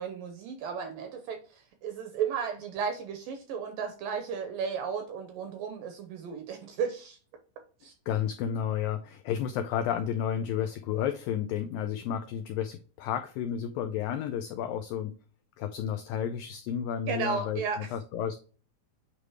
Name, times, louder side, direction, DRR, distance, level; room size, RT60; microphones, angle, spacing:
voice 1, 0.0-7.2 7.8-7.9 17.1-17.9, right 6 dB, 75° right, 2.1 m, -34 dB
voice 2, 8.1-15.1 15.6-18.4, left 9 dB, 90° left, 2.0 m, -32 dB
8.7 x 3.4 x 4.8 m
omnidirectional pair, 4.8 m